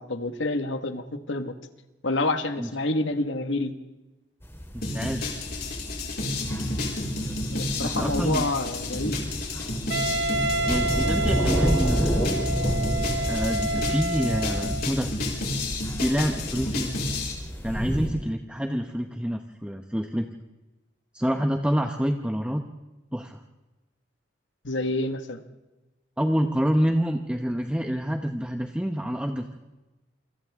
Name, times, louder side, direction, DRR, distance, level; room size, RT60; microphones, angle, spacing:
voice 1, 0.0-1.5 2.0-3.7 7.5-9.2 24.6-25.4, left 2 dB, 80° left, 8 dB, 1.7 m, -28 dB
sound 1, 4.4-18.1, equal, 15° left, 3.3 m, -30 dB
voice 2, 4.7-5.4 7.8-8.5 10.7-12.2 13.3-15.1 16.0-16.9 17.6-20.3 21.1-22.6 23.1-23.4 26.2-29.6, equal, 5° right, 4 dB, 0.9 m, -27 dB
sound 2, 4.8-17.3, left 2 dB, 55° left, 4.9 m, -31 dB
Wind instrument woodwind instrument, 9.9-14.9, right 2 dB, 75° right, 0.9 m, -29 dB
28.0 x 26.5 x 3.7 m, 1.1 s
head